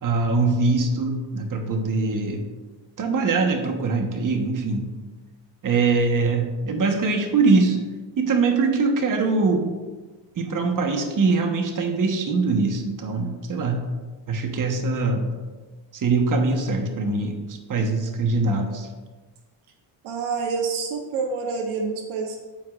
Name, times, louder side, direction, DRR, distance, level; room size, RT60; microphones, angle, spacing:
voice 1, 0.0-2.5 3.0-4.9 5.6-7.8 8.2-9.7 10.4-13.8 14.3-15.4 15.9-18.9, right 3 dB, 40° right, 4 dB, 1.3 m, -22 dB
voice 2, 20.0-22.4, right 4 dB, 80° right, 3 dB, 1.0 m, -27 dB
13.0 x 4.8 x 2.5 m, 1.3 s
supercardioid pair, 75°, 47 cm